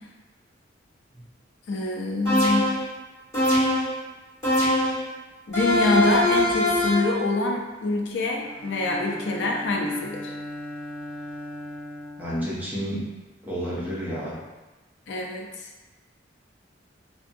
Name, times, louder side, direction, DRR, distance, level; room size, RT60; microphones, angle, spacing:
voice 1, 1.7-2.7 5.5-10.3 15.1-15.5, left 2 dB, 70° left, 0 dB, 0.4 m, -25 dB
sound 1, 2.2-2.9 3.3-4.0 4.4-5.1 5.5-7.1, left 1 dB, 15° left, 1.4 m, -22 dB
Bowed string instrument, 8.4-13.0, left 1 dB, 65° right, 0.4 m, -38 dB
voice 2, 12.2-13.0 13.4-14.3, equal, 10° right, -7 dB, 0.6 m, -30 dB
2.6 x 2.2 x 2.6 m, 1.2 s
head